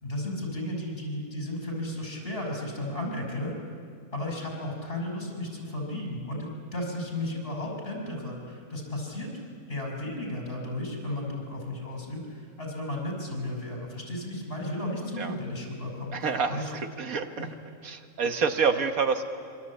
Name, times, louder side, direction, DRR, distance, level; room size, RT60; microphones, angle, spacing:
voice 1, 0.0-3.6 4.1-9.3 9.7-16.7 17.4-17.5, left 1 dB, 40° left, 1 dB, 5.8 m, -34 dB
voice 2, 16.1-17.5 17.8-19.2, right 5 dB, 70° right, 7 dB, 1.7 m, -27 dB
26.5 x 23.5 x 8.5 m, 2.3 s
omnidirectional pair, 1.5 m